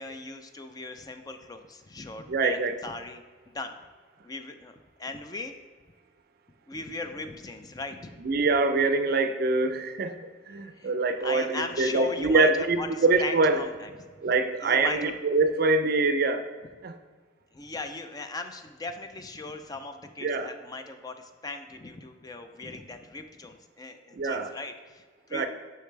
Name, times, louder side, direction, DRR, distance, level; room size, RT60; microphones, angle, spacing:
voice 1, 0.0-3.8 4.2-5.5 6.7-8.2 10.7-10.9 11.2-13.9 14.2-15.1 17.5-25.5, left 3 dB, 20° left, 7 dB, 0.3 m, -39 dB
voice 2, 2.3-2.8 8.2-13.6 14.2-16.5 16.8-16.9 20.2-20.5 24.2-24.5 25.3-25.5, right 3 dB, 55° right, 9 dB, 0.4 m, -24 dB
6.7 x 5.7 x 3.2 m, 1.5 s
head